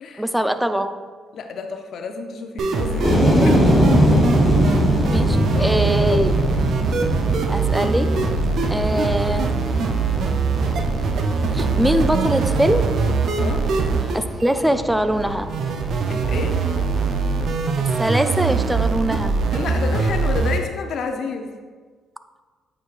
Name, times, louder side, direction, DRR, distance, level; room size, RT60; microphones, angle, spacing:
voice 1, 0.2-1.0 5.1-6.3 7.5-8.3 8.7-9.6 11.5-13.0 14.1-15.5 17.8-19.4, right 1 dB, 5° right, 10 dB, 0.4 m, -22 dB
voice 2, 1.3-3.6 5.5-6.4 11.4-12.0 13.4-13.7 16.1-16.6 19.5-21.5, left 4 dB, 65° left, 5 dB, 0.6 m, -30 dB
sound 1, 2.6-20.6, right 4 dB, 65° right, 0.5 m, -22 dB
sound 2, 3.0-19.0, equal, 15° left, 1.6 m, -23 dB
8.6 x 4.7 x 2.4 m, 1.5 s
cardioid pair, 80°, 0 cm